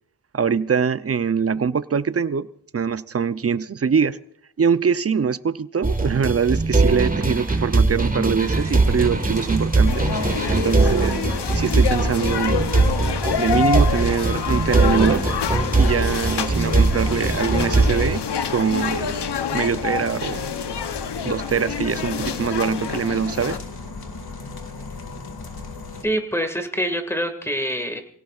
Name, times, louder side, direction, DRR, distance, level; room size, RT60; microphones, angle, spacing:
voice 1, 0.3-2.5 2.7-4.2 4.6-10.1 10.5-11.2 11.5-12.8 13.4-15.3 15.8-18.2 18.5-19.2 19.5-20.5 21.2-23.6, right 6 dB, 35° right, 15 dB, 0.6 m, -23 dB
sound 1, 5.8-18.2, right 3 dB, 20° right, 1.6 m, -21 dB
sound 2, 8.4-26.0, left 4 dB, 60° left, 2.2 m, -35 dB
sound 3, 9.8-23.6, left 7 dB, 75° left, 0.9 m, -27 dB
voice 2, 26.0-28.0, equal, 5° left, 5 dB, 2.0 m, -25 dB
28.0 x 17.0 x 2.5 m, 0.70 s
wide cardioid pair, 75°, 41 cm